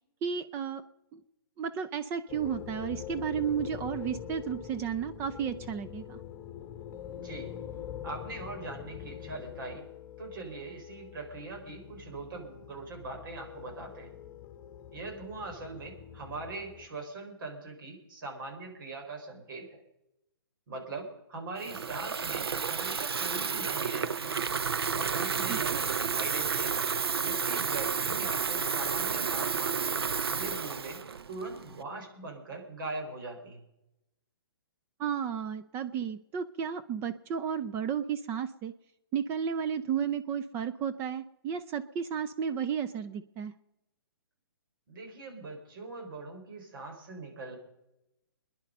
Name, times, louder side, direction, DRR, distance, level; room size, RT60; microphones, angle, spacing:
voice 1, 0.2-0.8 1.1-1.2 1.6-6.2 25.5-25.8 35.0-38.7 39.1-43.5, right 7 dB, 20° right, 10 dB, 0.5 m, -33 dB
sound 1, 2.3-16.9, left 9 dB, 20° left, 1.7 m, -44 dB
voice 2, 7.2-7.5 8.0-9.8 10.2-14.1 14.9-19.8 20.7-24.4 24.9-26.7 27.2-30.0 30.3-31.0 31.3-33.6 44.9-47.6, right 3 dB, 60° right, 3 dB, 4.8 m, -41 dB
Water tap faucet / Fill (with liquid), 21.6-31.8, right 6 dB, 80° right, 0.8 m, -31 dB
23.0 x 10.5 x 5.3 m, 0.90 s
hypercardioid pair, 145°, 13 cm